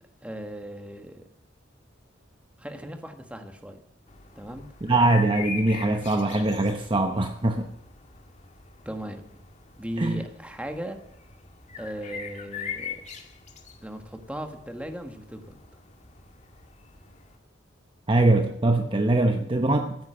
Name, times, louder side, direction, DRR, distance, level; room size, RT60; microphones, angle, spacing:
voice 1, 0.2-1.2 2.6-3.8 4.3-4.6 8.8-9.2 9.8-11.0 11.8-13.0 13.8-15.6, equal, 5° right, 6 dB, 1.6 m, -37 dB
sound 1, 4.1-17.4, left 6 dB, 40° left, 2.0 m, -42 dB
voice 2, 4.8-7.7 10.0-10.2 18.1-20.0, right 2 dB, 25° right, 5 dB, 0.9 m, -22 dB
15.5 x 9.2 x 7.7 m, 0.74 s
head